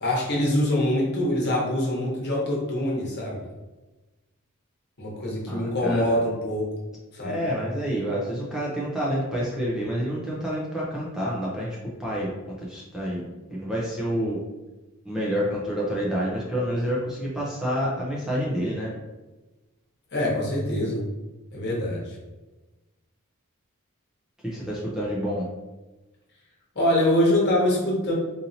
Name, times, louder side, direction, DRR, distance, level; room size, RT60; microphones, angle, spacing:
voice 1, 0.0-3.5 5.0-6.7 7.1-7.5 20.1-21.0 21.5-22.2 26.7-28.1, left 1 dB, 50° left, -4 dB, 1.1 m, -24 dB
voice 2, 5.5-6.2 7.2-14.4 15.1-18.9 24.4-25.5, equal, 5° right, -6 dB, 0.5 m, -28 dB
4.0 x 2.7 x 2.7 m, 1.1 s
head